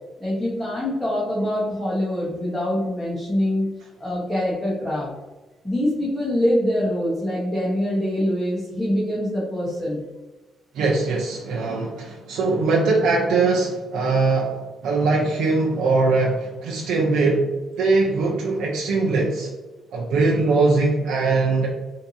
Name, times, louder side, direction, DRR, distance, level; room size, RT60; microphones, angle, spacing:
voice 1, 0.2-3.7 4.0-5.1 5.6-10.0, left 1 dB, 5° left, -8 dB, 1.3 m, -24 dB
voice 2, 10.7-14.6 14.8-17.5 17.8-19.5 19.9-21.7, right 3 dB, 80° right, -3 dB, 0.7 m, -21 dB
4.5 x 2.8 x 2.8 m, 1.2 s
cardioid pair, 90°, 0 cm